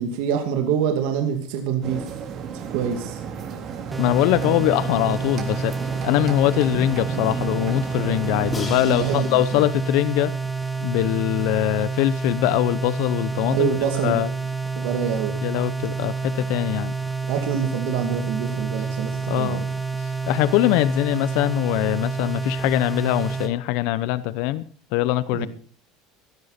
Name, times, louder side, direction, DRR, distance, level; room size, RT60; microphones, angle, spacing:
voice 1, 0.0-2.2 2.5-3.2 8.8-9.7 13.5-14.2 14.7-15.3 17.3-19.7 25.3-25.5, right 8 dB, 75° right, 4 dB, 2.6 m, -26 dB
sound 1, 1.8-9.2, right 7 dB, 45° right, 3.9 m, -33 dB
sound 2, 3.9-23.5, right 5 dB, 10° right, 2.2 m, -28 dB
voice 2, 4.0-5.7 6.0-10.3 10.8-13.7 14.0-14.3 15.4-16.9 19.3-19.6 20.3-24.6 24.9-25.5, left 16 dB, 70° left, 16 dB, 0.8 m, -22 dB
Crash cymbal, 8.5-11.4, left 3 dB, 25° left, 5.1 m, -39 dB
18.0 x 13.0 x 4.3 m, 0.43 s
supercardioid pair, 115°, 0 cm